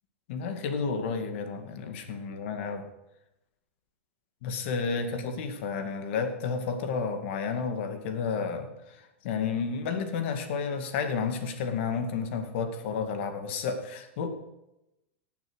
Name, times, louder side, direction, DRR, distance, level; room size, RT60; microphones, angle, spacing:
voice 1, 0.3-2.9 4.4-14.3, left 5 dB, 65° left, 7 dB, 2.1 m, -31 dB
17.5 x 7.1 x 6.4 m, 0.92 s
hypercardioid pair, 125°, 7 cm